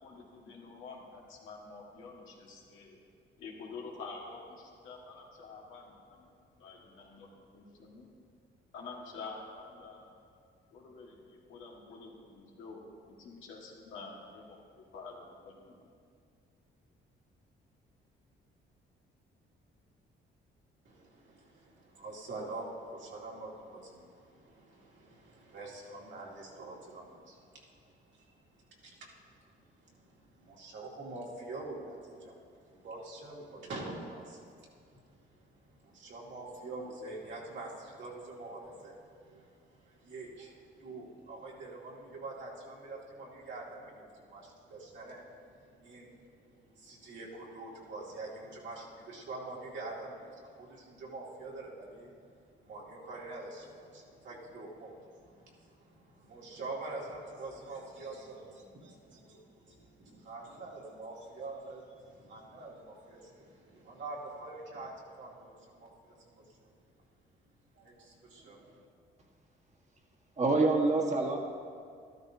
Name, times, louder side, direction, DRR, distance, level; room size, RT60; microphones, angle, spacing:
voice 1, 0.0-3.0 3.4-6.3 6.6-7.3 7.5-8.1 8.7-10.1 10.7-12.8 13.2-15.9, left 4 dB, 90° left, -2 dB, 1.9 m, -48 dB
voice 2, 20.8-29.1 29.5-52.3 52.6-64.9 65.2-66.7 67.7-68.8, right 2 dB, 65° right, -4 dB, 2.3 m, -46 dB
voice 3, 70.4-71.4, right 3 dB, 35° right, 1 dB, 1.6 m, -26 dB
13.0 x 12.0 x 2.8 m, 2.2 s
cardioid pair, 90°, 20 cm